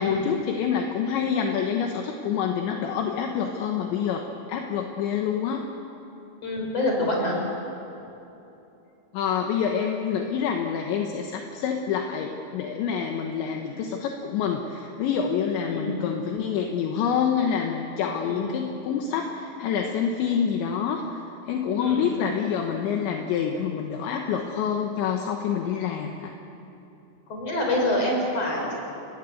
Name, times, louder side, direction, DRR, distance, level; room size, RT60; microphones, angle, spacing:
voice 1, 0.0-5.7 9.1-21.2 21.5-26.3, left 7 dB, 75° left, 3 dB, 3.5 m, -27 dB
voice 2, 6.4-7.4 15.7-16.0 18.2-18.5 21.8-22.0 27.3-28.7, left 1 dB, 30° left, 0 dB, 6.3 m, -26 dB
30.0 x 20.5 x 8.0 m, 3.0 s
omnidirectional pair, 5.6 m